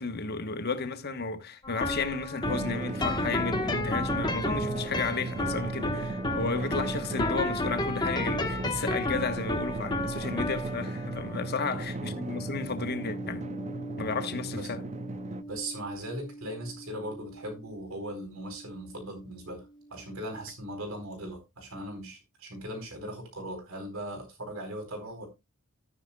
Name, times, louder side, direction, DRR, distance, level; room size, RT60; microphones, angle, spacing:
voice 1, 0.0-13.5 14.0-14.8, left 4 dB, 50° left, 1.2 m, -33 dB
sound 1, 1.6-18.8, left 1 dB, 20° left, 1.3 m, -34 dB
Drum, 2.5-15.4, right 2 dB, 35° right, 0.6 m, -36 dB
voice 2, 15.5-25.3, right 1 dB, 75° right, 4.5 m, -39 dB
13.5 x 9.6 x 2.3 m
head